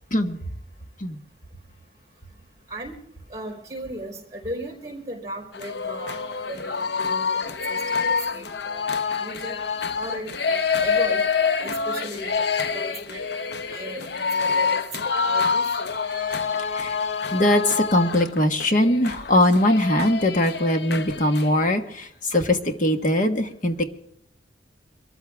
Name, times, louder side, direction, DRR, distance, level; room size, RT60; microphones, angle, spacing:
voice 1, 3.3-9.5 9.9-11.2 11.6-14.1 14.4-14.8 15.2-15.6, right 1 dB, 15° right, 1 dB, 4.7 m, -37 dB
sound 1, 5.5-21.7, left 5 dB, 60° left, 0.8 m, -26 dB
voice 2, 17.3-23.8, left 1 dB, 45° left, 7 dB, 1.5 m, -21 dB
23.5 x 14.0 x 3.6 m, 0.68 s
head